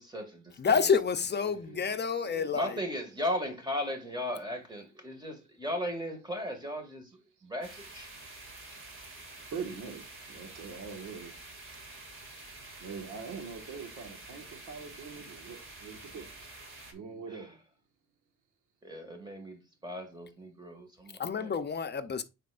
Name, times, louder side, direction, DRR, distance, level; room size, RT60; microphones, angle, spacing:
voice 1, 0.0-0.9 2.5-7.1 7.4-8.1 17.3-17.5 18.8-21.5, left 1 dB, 15° right, 2.2 m, -37 dB
voice 2, 0.6-2.7 21.2-22.2, left 6 dB, 35° left, 0.8 m, -28 dB
voice 3, 1.3-2.0 2.2-2.9 9.5-11.3 12.8-16.3 16.9-17.5, right 5 dB, 85° right, 1.8 m, -43 dB
sound 1, 7.6-16.9, right 2 dB, 40° right, 2.5 m, -48 dB
9.3 x 4.3 x 2.6 m
cardioid pair, 90°, 30 cm